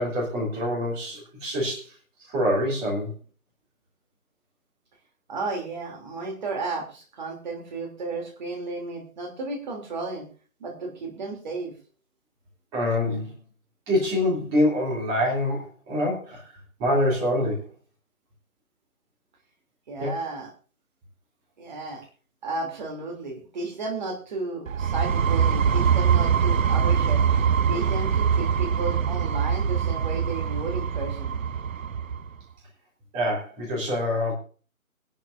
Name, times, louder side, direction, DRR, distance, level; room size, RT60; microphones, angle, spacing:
voice 1, 0.0-1.9 2.3-3.1 12.7-13.3 13.9-16.5 16.8-17.7 20.0-20.2 33.1-34.4, left 1 dB, 10° right, -4 dB, 3.0 m, -25 dB
voice 2, 5.3-10.2 10.6-11.7 19.9-20.5 21.6-22.0 22.4-27.3 27.7-31.4, right 3 dB, 30° right, 1 dB, 3.1 m, -33 dB
sound 1, 24.7-32.3, right 7 dB, 65° right, 0.6 m, -23 dB
21.5 x 11.0 x 2.6 m, 0.38 s
figure-of-eight pair, 160°, 43 cm